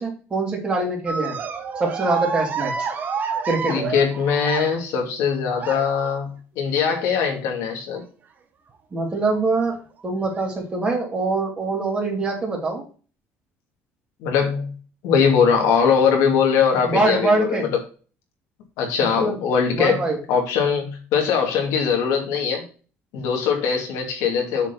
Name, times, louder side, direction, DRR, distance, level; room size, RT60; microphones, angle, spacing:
voice 1, 0.0-1.4 1.8-2.9 3.5-3.9 8.9-9.8 10.0-12.8 16.9-17.7 19.0-19.4 19.7-20.2, right 3 dB, 20° right, -1 dB, 3.1 m, -24 dB
sound 1, 1.1-5.0 5.6-6.1 7.1-7.5 7.9-8.0 9.3-9.4 10.2-10.4, right 5 dB, 35° right, 1.2 m, -29 dB
voice 2, 3.7-6.3 6.6-8.0 14.2-14.7 15.0-17.8 18.8-20.0 20.3-22.6 23.1-24.7, left 6 dB, 85° left, 2 dB, 2.7 m, -21 dB
7.2 x 4.9 x 5.9 m, 0.37 s
cardioid pair, 145°, 5 cm